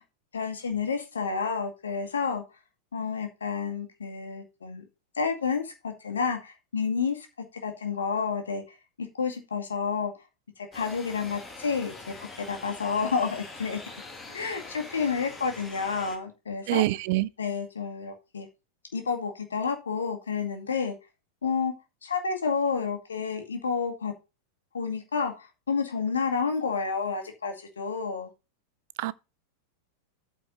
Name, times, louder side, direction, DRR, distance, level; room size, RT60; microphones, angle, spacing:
voice 1, 0.3-2.4 2.9-4.8 5.2-7.3 7.6-8.6 9.2-10.1 10.6-11.9 12.4-13.8 14.3-16.8 17.4-18.5 18.9-20.9 21.4-21.7 22.0-24.1 24.7-28.3, left 5 dB, 70° left, 2.2 m, -30 dB
sound 1, 10.7-16.2, left 3 dB, 15° left, 2.5 m, -43 dB
voice 2, 16.7-17.3 29.0-29.1, right 17 dB, 50° right, 0.5 m, -25 dB
8.7 x 4.7 x 5.4 m
figure-of-eight pair, 90°, 0 cm